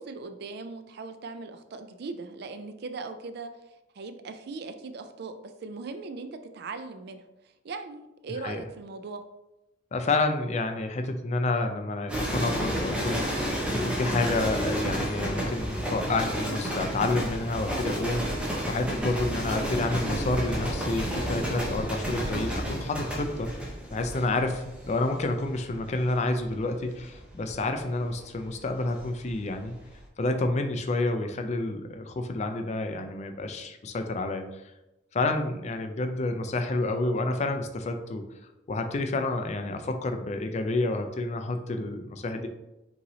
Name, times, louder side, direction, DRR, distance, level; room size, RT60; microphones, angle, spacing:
voice 1, 0.0-3.5 3.9-7.2 7.6-9.2, right 3 dB, 60° right, 8 dB, 0.4 m, -39 dB
voice 2, 9.9-23.5 23.9-29.8 30.2-34.6 35.1-38.2 38.7-42.5, left 2 dB, 35° left, 6 dB, 0.4 m, -29 dB
sound 1, 12.1-29.3 29.6-30.0, equal, 5° right, 0.8 m, -31 dB
5.4 x 3.1 x 2.7 m, 0.94 s
head